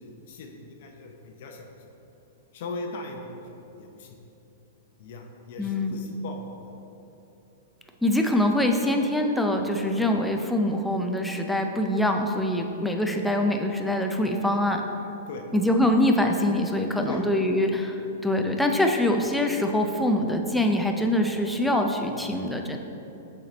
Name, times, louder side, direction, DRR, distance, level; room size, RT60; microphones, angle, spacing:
voice 1, 0.0-1.7 2.5-4.2 5.0-6.7 15.3-15.4 15.8-15.9 17.0-17.2 22.1-22.2, left 3 dB, 60° left, 2 dB, 0.7 m, -39 dB
voice 2, 5.6-6.0 8.0-14.8 15.5-22.8, left 1 dB, ahead, 3 dB, 0.4 m, -24 dB
7.3 x 4.3 x 4.0 m, 3.0 s
hypercardioid pair, 145°, 0 cm